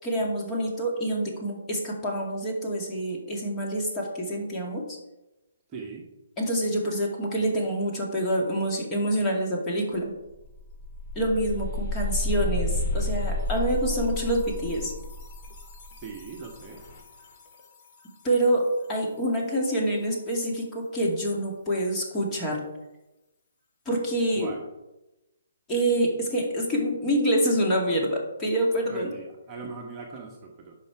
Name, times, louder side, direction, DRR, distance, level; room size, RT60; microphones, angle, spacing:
voice 1, 0.0-4.9 6.4-10.1 11.2-14.9 18.2-22.6 23.9-24.5 25.7-29.1, right 1 dB, 20° left, -2 dB, 2.3 m, -26 dB
voice 2, 5.7-6.1 16.0-16.8 24.3-24.6 28.9-30.7, right 5 dB, 20° right, -1 dB, 1.3 m, -40 dB
sound 1, 9.9-10.0 10.3-17.1, left 1 dB, 35° left, 1.8 m, -31 dB
10.5 x 5.7 x 4.8 m, 0.99 s
hypercardioid pair, 150°, 0 cm